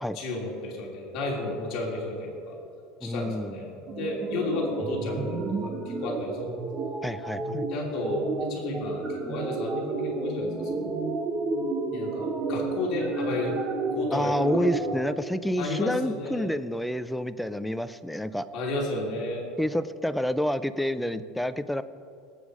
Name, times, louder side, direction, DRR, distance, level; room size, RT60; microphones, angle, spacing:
voice 1, 0.1-2.6 3.0-6.5 7.7-11.0 11.9-13.6 13.9-14.3 15.6-16.5 18.5-19.5 21.0-21.2, left 2 dB, 40° left, -2 dB, 3.1 m, -33 dB
voice 2, 3.0-3.5 7.0-7.7 14.1-18.5 19.6-21.8, left 1 dB, ahead, 12 dB, 0.3 m, -29 dB
sound 1, 3.9-15.0, right 3 dB, 25° right, 1.0 m, -31 dB
18.0 x 8.1 x 4.9 m, 2.5 s
supercardioid pair, 160°, 0 cm